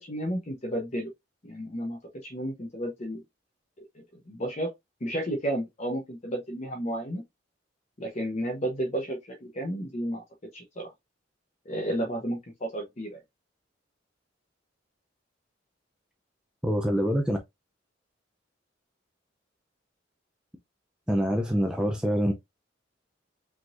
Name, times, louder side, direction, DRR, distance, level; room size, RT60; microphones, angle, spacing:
voice 1, 0.0-1.1 1.4-3.2 4.3-4.7 5.0-7.2 8.0-10.2 10.5-10.9 11.7-13.2, right 1 dB, 40° left, 1.0 m, -32 dB
voice 2, 16.6-17.4 21.1-22.3, equal, 5° right, 0.5 m, -25 dB
5.2 x 3.8 x 2.6 m
head